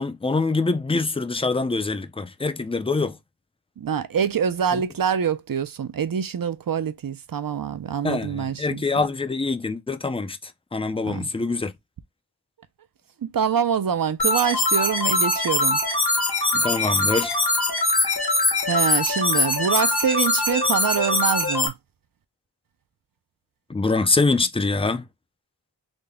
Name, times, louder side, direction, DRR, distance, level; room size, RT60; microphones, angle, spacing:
voice 1, 0.0-3.2 4.7-4.8 8.0-11.7 16.5-17.3 23.7-25.1, left 3 dB, 15° left, 0.3 m, -24 dB
voice 2, 3.8-9.0 11.0-11.3 13.2-15.8 18.7-21.8, right 7 dB, 55° right, 0.5 m, -25 dB
sound 1, 14.2-21.7, left 2 dB, 60° left, 1.1 m, -22 dB
3.8 x 2.1 x 3.4 m
wide cardioid pair, 60°, 42 cm